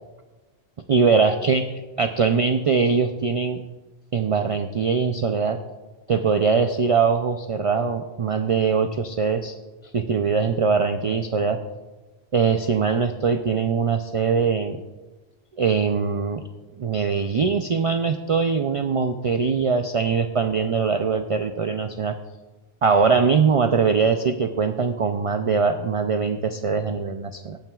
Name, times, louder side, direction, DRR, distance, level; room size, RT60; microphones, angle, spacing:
voice 1, 0.9-3.6 4.1-5.6 6.1-9.6 9.9-11.6 12.3-14.8 15.6-16.4 16.8-22.2 22.8-27.6, right 5 dB, 50° right, 8 dB, 0.4 m, -22 dB
17.5 x 8.9 x 2.3 m, 1.2 s
omnidirectional pair, 1.1 m